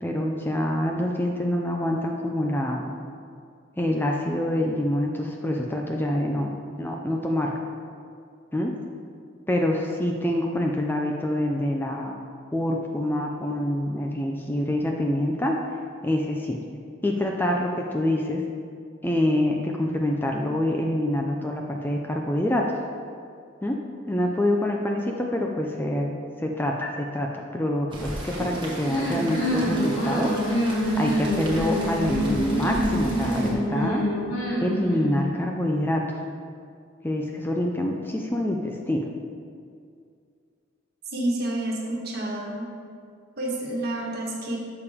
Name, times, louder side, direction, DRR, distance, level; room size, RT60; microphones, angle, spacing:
voice 1, 0.0-2.9 3.8-6.5 6.8-7.5 8.5-8.7 9.5-12.1 12.5-15.6 16.0-16.6 17.0-18.4 19.0-22.8 23.6-23.8 24.1-30.3 31.0-34.0 34.6-36.2 37.0-39.0, left 1 dB, 10° left, 1 dB, 0.5 m, -26 dB
Rain, 27.9-33.5, right 1 dB, 25° right, 1.6 m, -36 dB
sound 1, 28.8-35.3, equal, 85° left, 2.1 m, -26 dB
voice 2, 41.1-42.7 43.4-44.6, right 1 dB, 50° right, -2 dB, 1.7 m, -29 dB
11.5 x 6.9 x 3.6 m, 2.3 s
head